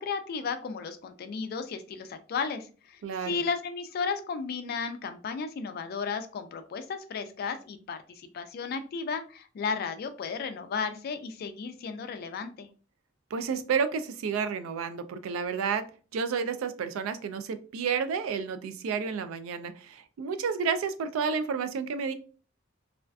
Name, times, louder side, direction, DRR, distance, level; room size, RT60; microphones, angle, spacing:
voice 1, 0.0-12.7, left 5 dB, 50° left, 9 dB, 0.3 m, -34 dB
voice 2, 3.0-3.4 13.3-15.9 16.1-22.1, right 6 dB, 85° right, 11 dB, 0.3 m, -31 dB
2.4 x 2.3 x 2.3 m, 0.38 s
head